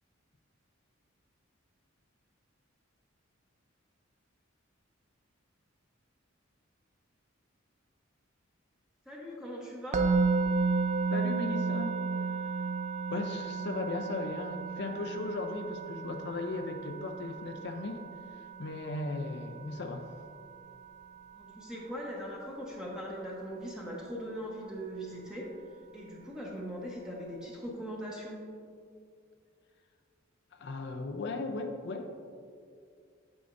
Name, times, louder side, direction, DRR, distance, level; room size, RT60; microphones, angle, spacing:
voice 1, 9.1-10.0 21.3-25.5 25.9-28.4, equal, 5° right, -4 dB, 1.0 m, -40 dB
Musical instrument, 9.9-21.0, right 4 dB, 35° right, 0.4 m, -33 dB
voice 2, 11.1-12.0 13.1-20.1 30.5-32.1, left 2 dB, 55° left, 5 dB, 0.5 m, -37 dB
8.4 x 8.1 x 2.6 m, 2.3 s
head